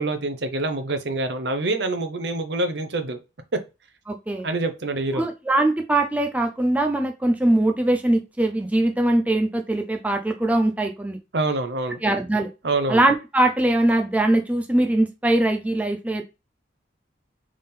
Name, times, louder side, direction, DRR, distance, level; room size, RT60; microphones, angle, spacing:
voice 1, 0.0-3.2 4.4-5.2 11.3-12.0 12.6-13.0, right 2 dB, 65° right, 0.7 m, -26 dB
voice 2, 4.1-4.5 5.1-11.2 12.0-12.5 12.9-16.2, right 1 dB, 10° right, 0.4 m, -21 dB
3.6 x 3.5 x 4.2 m
head